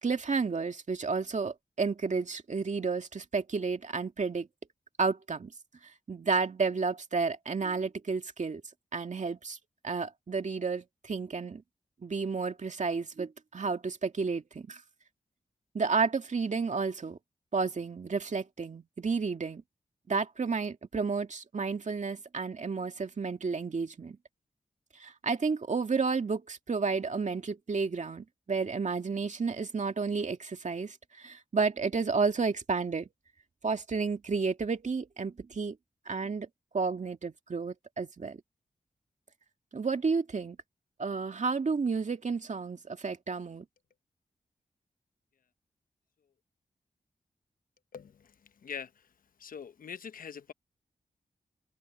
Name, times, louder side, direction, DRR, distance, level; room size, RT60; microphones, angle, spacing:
voice 1, 0.0-4.5 5.0-5.5 5.8-8.6 8.9-9.6 9.8-11.6 12.0-14.8 15.7-17.2 17.5-19.6 20.1-24.2 24.9-33.1 33.6-35.8 36.1-36.5 36.7-38.4 39.7-40.6 41.0-43.6, right 4 dB, 55° right, 2.2 m, -31 dB
voice 2, 47.9-48.3 48.6-48.9 49.4-50.5, left 7 dB, 75° left, 0.9 m, -42 dB
open air
cardioid pair, 50°, 14 cm